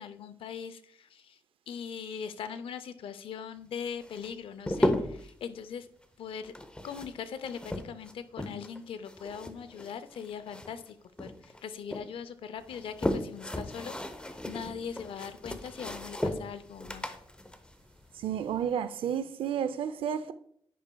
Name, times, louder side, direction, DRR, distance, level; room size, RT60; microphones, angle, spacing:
voice 1, 0.0-1.4 1.7-5.9 6.2-6.5 6.8-17.1, left 7 dB, 85° left, 0.5 m, -41 dB
sound 1, 4.0-5.3 6.4-8.8 9.1-10.9 11.2-12.1 12.6-18.7, left 1 dB, 10° left, 0.7 m, -35 dB
voice 2, 18.1-20.3, right 8 dB, 85° right, 0.5 m, -31 dB
10.0 x 5.5 x 2.3 m
cardioid pair, 90°, 9 cm